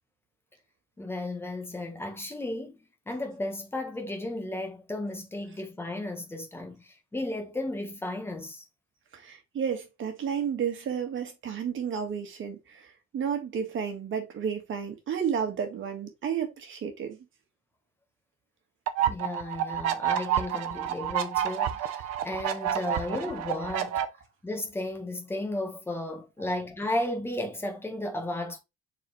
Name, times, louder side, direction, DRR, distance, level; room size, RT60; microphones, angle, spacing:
voice 1, 1.0-2.8 3.1-8.6 19.0-24.0 24.4-28.6, left 1 dB, 10° left, 1.3 m, -34 dB
voice 2, 9.2-12.6 13.1-17.2 26.4-26.5, right 7 dB, 45° right, 1.9 m, -31 dB
sound 1, 18.9-24.0, right 10 dB, 60° right, 0.9 m, -29 dB
7.1 x 4.3 x 3.2 m
cardioid pair, 160°, 29 cm